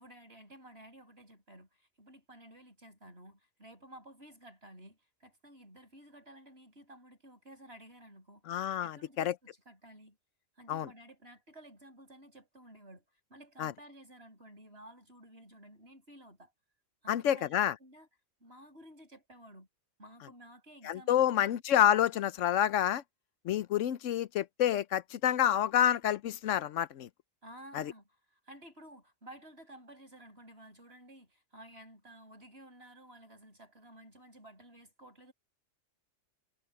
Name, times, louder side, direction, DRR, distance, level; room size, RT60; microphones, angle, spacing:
voice 1, 0.0-8.6 8.8-10.2 10.6-13.0 13.3-16.5 17.0-18.1 18.4-19.7 20.0-21.5 27.4-35.3, right 1 dB, 55° right, 8.0 m, -54 dB
voice 2, 8.5-9.3 10.7-10.9 13.6-13.7 17.1-17.7 20.8-23.0 23.4-27.1 27.7-27.9, left 11 dB, 80° left, 1.0 m, -28 dB
omnidirectional pair, 1.3 m